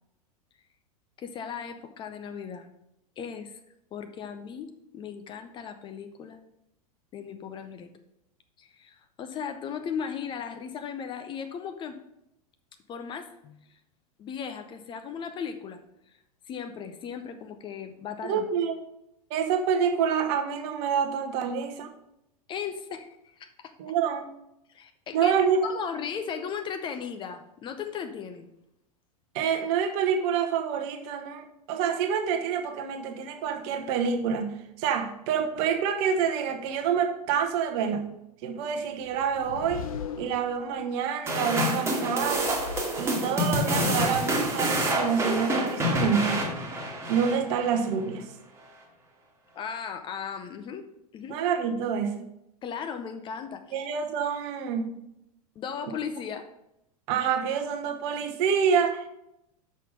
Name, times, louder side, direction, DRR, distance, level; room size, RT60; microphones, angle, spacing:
voice 1, 1.2-2.7 3.2-3.6 3.9-6.4 7.1-7.9 8.6-12.0 12.9-13.6 14.2-15.8 16.5-18.4 22.5-23.7 24.7-28.5 49.5-50.9 51.1-51.4 52.6-53.9 55.6-56.5, left 7 dB, 25° left, 7 dB, 0.6 m, -37 dB
voice 2, 18.2-18.8 19.3-21.9 23.8-24.3 25.1-25.7 29.3-38.1 38.4-39.9 40.2-42.5 43.0-46.5 47.1-48.3 51.3-52.2 53.7-55.0 57.1-59.1, right 7 dB, 40° right, 6 dB, 1.0 m, -27 dB
sound 1, 39.0-41.0 42.1-43.6, left 6 dB, 60° left, 0.8 m, -40 dB
sound 2, 41.3-47.8, equal, 15° right, 1.6 m, -27 dB
6.4 x 5.8 x 5.1 m, 0.84 s
figure-of-eight pair, 90°, 20 cm